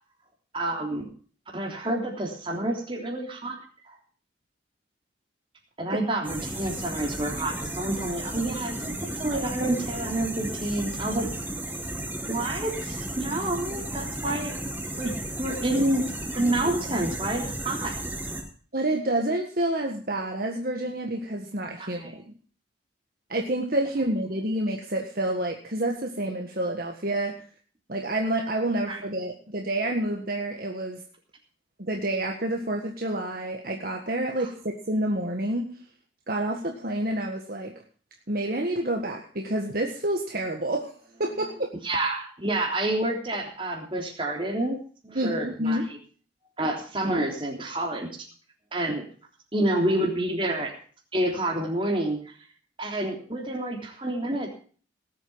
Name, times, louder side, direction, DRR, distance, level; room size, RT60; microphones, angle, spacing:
voice 1, 0.5-1.1 1.5-3.6 3.9-4.0 5.8-11.3 12.3-14.6 14.9-15.1 15.4-16.0 16.3-18.0 21.8-22.1 28.9-29.0 34.4-34.5 41.8-44.8 45.0-45.8 46.6-48.1 48.7-49.0 49.5-50.7 51.1-52.3 52.8-54.5, right 1 dB, 25° right, 0 dB, 3.5 m, -28 dB
sound 1, 6.2-18.4, right 1 dB, 10° right, 4.1 m, -34 dB
voice 2, 18.7-22.3 23.3-27.4 27.9-31.0 31.8-35.7 36.3-37.7 38.3-40.9 41.2-41.7 45.2-45.9, right 1 dB, 50° right, 1 dB, 1.6 m, -28 dB
19.0 x 8.3 x 5.6 m, 0.43 s
head